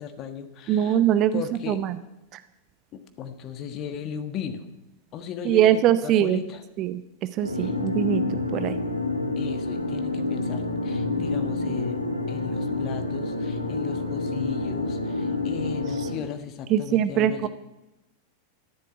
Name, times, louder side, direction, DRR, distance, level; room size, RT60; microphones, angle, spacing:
voice 1, 0.0-1.0 1.3-1.8 2.9-4.7 5.1-6.6 7.6-7.7 9.3-17.5, left 7 dB, 35° left, 8 dB, 1.4 m, -36 dB
voice 2, 0.7-2.0 2.3-2.4 5.5-6.4 6.8-7.0 7.4-8.2 8.5-8.8 16.7-17.5, right 11 dB, 35° right, 14 dB, 0.7 m, -22 dB
sound 1, 7.4-16.1, left 3 dB, 90° right, 2.7 m, -28 dB
13.5 x 7.5 x 8.7 m, 0.94 s
figure-of-eight pair, 90°, 0 cm